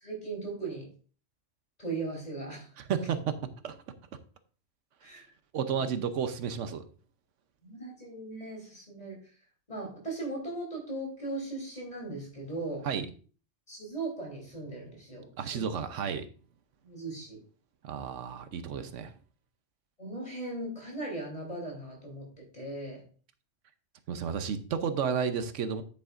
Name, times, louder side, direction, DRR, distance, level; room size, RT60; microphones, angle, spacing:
voice 1, 0.0-0.9 1.8-2.7 5.0-5.3 7.6-9.2 9.7-12.9 13.7-15.6 16.8-17.4 20.0-22.3 22.5-23.0, right 2 dB, 30° left, -1 dB, 3.5 m, -38 dB
voice 2, 2.8-3.4 3.6-3.8 5.5-6.9 12.8-13.1 15.4-16.3 17.8-19.1 24.1-25.8, right 7 dB, 80° right, 10 dB, 1.1 m, -32 dB
9.5 x 8.7 x 2.5 m, 0.38 s
omnidirectional pair, 1.3 m